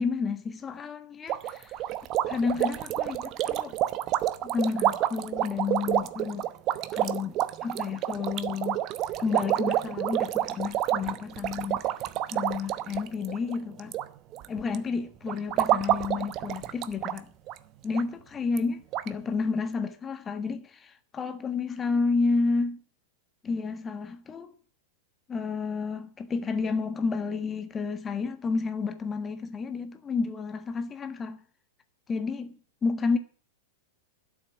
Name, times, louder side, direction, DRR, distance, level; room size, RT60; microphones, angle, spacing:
voice 1, 0.0-1.7 2.3-3.8 4.4-6.5 6.9-8.8 9.2-11.8 12.3-14.0 14.5-17.3 17.8-22.8 23.4-24.5 25.3-31.4 32.1-32.5 32.8-33.2, left 4 dB, 20° left, 1.5 m, -30 dB
sound 1, 1.3-14.0 14.3-14.7 15.3-17.2 17.5-17.6 17.9-18.0 18.6-18.7 18.9-19.1, right 13 dB, 35° right, 0.9 m, -29 dB
12.5 x 7.1 x 9.9 m
figure-of-eight pair, 95°, 0 cm